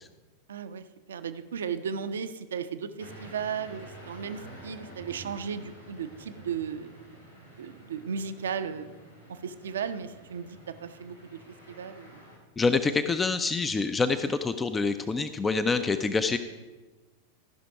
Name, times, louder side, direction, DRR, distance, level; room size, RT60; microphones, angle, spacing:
voice 1, 0.5-6.9 7.6-8.9 9.3-11.4 11.7-12.2, right 7 dB, 65° right, 10 dB, 0.6 m, -35 dB
sound 1, 3.0-12.4, right 1 dB, 85° left, 2.5 m, -49 dB
voice 2, 12.6-16.4, left 4 dB, 15° left, 10 dB, 0.4 m, -26 dB
14.5 x 5.8 x 4.7 m, 1.2 s
figure-of-eight pair, 90°, 0 cm